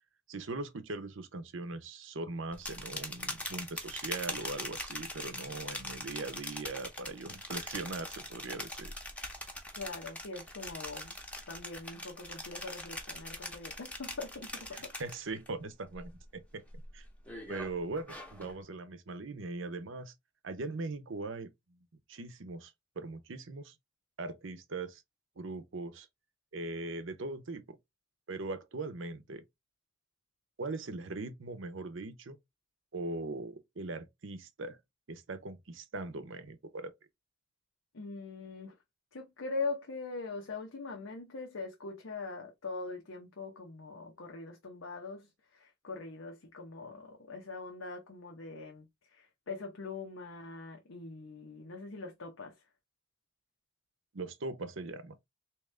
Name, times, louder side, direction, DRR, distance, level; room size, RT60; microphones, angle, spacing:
voice 1, 0.3-8.9 14.7-16.6 16.9-17.0 17.5-20.1 20.4-21.8 22.1-23.7 24.2-25.0 25.4-26.1 26.5-27.8 28.3-29.4 30.6-32.4 32.9-34.8 35.1-36.9 54.1-55.2, right 3 dB, 70° right, 0.7 m, -40 dB
sound 1, 2.5-15.5 15.8-16.3 16.7-18.6, left 1 dB, 5° left, 0.8 m, -42 dB
voice 2, 9.8-11.1 11.5-14.9 37.9-38.8 39.1-52.5, left 3 dB, 85° left, 0.8 m, -42 dB
3.6 x 3.0 x 3.2 m
head